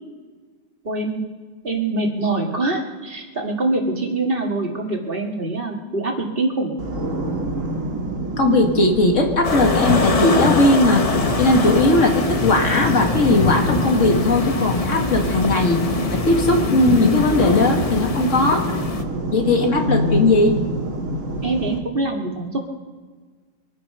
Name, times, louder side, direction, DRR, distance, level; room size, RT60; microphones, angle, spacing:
voice 1, 0.8-1.2 1.6-6.7 21.4-22.6, right 2 dB, 45° right, 1 dB, 2.1 m, -24 dB
sound 1, 6.8-21.8, right 1 dB, 85° right, 2.1 m, -28 dB
voice 2, 8.4-11.0 11.4-15.8 16.1-18.8 19.3-20.6, left 2 dB, 75° left, 2 dB, 2.3 m, -18 dB
sound 2, 9.4-19.0, left 4 dB, 30° left, 1.0 m, -23 dB
24.5 x 9.6 x 5.5 m, 1.4 s
omnidirectional pair, 1.3 m